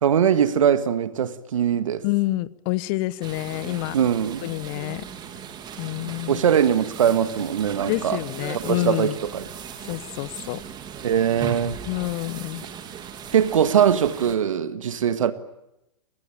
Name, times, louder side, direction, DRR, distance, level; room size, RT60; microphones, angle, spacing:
voice 1, 0.0-2.0 3.9-4.4 6.3-8.2 8.7-9.4 11.0-11.8 13.3-15.3, right 8 dB, 65° right, 1.7 m, -21 dB
voice 2, 2.0-4.0 4.4-5.0 5.8-6.4 7.9-9.2 9.8-10.6 11.9-12.6, left 19 dB, 40° left, 1.0 m, -27 dB
sound 1, 3.2-14.4, right 7 dB, 25° right, 2.9 m, -37 dB
27.5 x 19.5 x 8.9 m
figure-of-eight pair, 110°, 18 cm